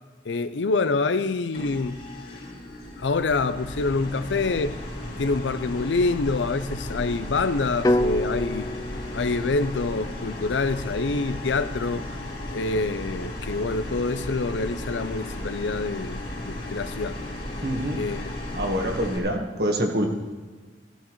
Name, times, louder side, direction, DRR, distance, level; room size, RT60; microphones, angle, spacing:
voice 1, 0.2-2.0 3.0-4.8 5.2-8.7 9.1-12.1 12.5-17.2 17.9-18.7, left 3 dB, 90° left, 0.6 m, -26 dB
sound 1, 1.5-19.2, left 1 dB, 55° left, 2.9 m, -35 dB
sound 2, 7.8-11.9, left 1 dB, 20° left, 0.4 m, -29 dB
voice 2, 17.6-18.0 18.5-20.1, equal, 60° right, 1.5 m, -25 dB
15.0 x 14.0 x 3.1 m
head